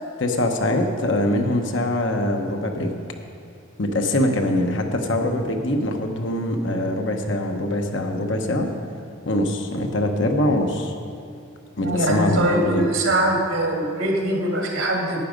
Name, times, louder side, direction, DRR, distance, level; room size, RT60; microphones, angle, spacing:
voice 1, 0.2-2.9 3.8-8.7 9.3-10.9 11.8-12.9, left 1 dB, 60° left, 4 dB, 1.0 m, -23 dB
voice 2, 11.8-15.2, right 1 dB, 65° right, 0 dB, 2.0 m, -22 dB
11.0 x 9.3 x 5.2 m, 2.7 s
head